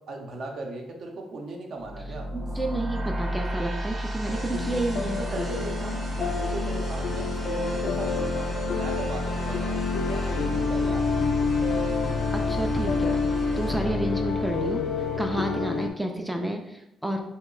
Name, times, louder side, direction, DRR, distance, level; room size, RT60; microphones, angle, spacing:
voice 1, 0.1-2.3 5.2-9.8 10.0-11.1, right 2 dB, 60° right, 2 dB, 0.6 m, -37 dB
sound 1, 1.8-14.9, right 1 dB, 30° right, 0.8 m, -32 dB
voice 2, 2.3-5.2 12.3-13.3 13.6-14.8 15.2-17.2, right 1 dB, 5° right, 2 dB, 0.3 m, -30 dB
sound 2, 4.3-15.9, left 5 dB, 75° left, 0.3 m, -28 dB
2.9 x 2.1 x 3.7 m, 0.89 s
cardioid pair, 90°, 0 cm